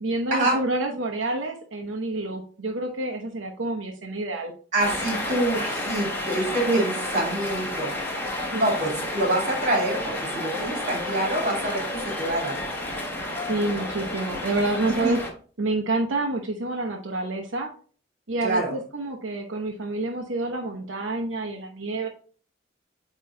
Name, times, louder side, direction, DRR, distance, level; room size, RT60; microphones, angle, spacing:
voice 1, 0.0-4.5 6.7-6.8 8.5-8.7 13.4-15.2 15.6-17.7 18.3-22.1, right 2 dB, 85° right, 2 dB, 0.9 m, -28 dB
voice 2, 4.7-7.9 8.5-12.6 15.0-15.1 18.4-18.7, right 1 dB, 40° right, -1 dB, 2.6 m, -26 dB
sound 1, 4.8-15.3, left 1 dB, 10° left, 1.2 m, -31 dB
8.4 x 3.1 x 3.7 m, 0.42 s
head